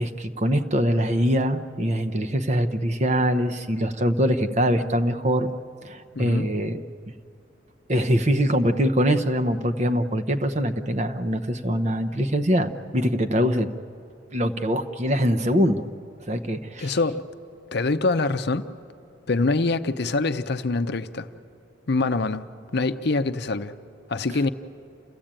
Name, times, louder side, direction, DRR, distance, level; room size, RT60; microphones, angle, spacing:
voice 1, 0.0-5.5 5.8-6.8 7.9-13.7 14.3-15.9 16.3-17.0, equal, 35° right, 0.8 m, -23 dB
voice 2, 6.1-6.5 16.8-17.2 17.7-18.7 19.3-21.3 21.9-22.4 22.7-23.7 24.1-24.5, left 3 dB, 55° left, 0.7 m, -24 dB
28.5 x 15.0 x 8.9 m
head